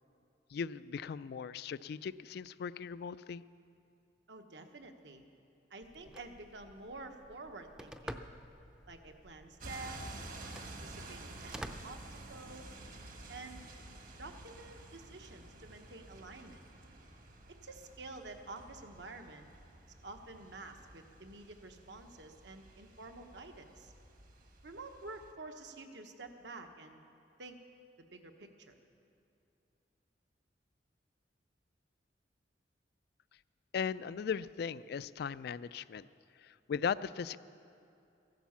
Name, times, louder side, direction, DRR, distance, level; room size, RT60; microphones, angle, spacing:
voice 1, 0.5-3.4 33.7-36.1 36.4-37.4, left 6 dB, 60° left, 17 dB, 0.3 m, -38 dB
voice 2, 4.3-5.2 5.7-8.2 8.9-10.3 10.6-12.7 13.3-13.6 14.2-16.6 17.6-19.5 20.0-23.9 24.6-27.0 27.4-27.6 28.0-28.8, right 3 dB, 70° right, 5 dB, 1.2 m, -49 dB
Telephone, 5.8-12.8, equal, 5° right, 0.5 m, -50 dB
sound 1, 9.6-25.3, right 2 dB, 50° right, 1.3 m, -51 dB
15.0 x 11.5 x 7.2 m, 2.6 s
head